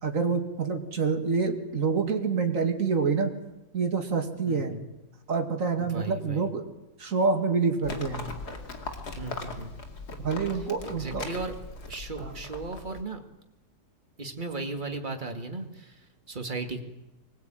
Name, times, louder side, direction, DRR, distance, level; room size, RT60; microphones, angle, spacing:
voice 1, 0.0-3.3 3.7-4.7 5.3-6.6 7.0-8.3 10.2-11.3 12.2-12.3, right 5 dB, 55° right, 4 dB, 2.7 m, -27 dB
voice 2, 4.5-4.8 5.8-6.5 9.2-9.7 10.9-11.5 11.9-13.2 14.2-16.8, right 3 dB, 30° right, 4 dB, 2.4 m, -36 dB
Livestock farm animals working animals, 7.8-13.0, left 3 dB, 75° left, 3.0 m, -39 dB
24.5 x 19.5 x 9.2 m, 0.99 s
omnidirectional pair, 1.7 m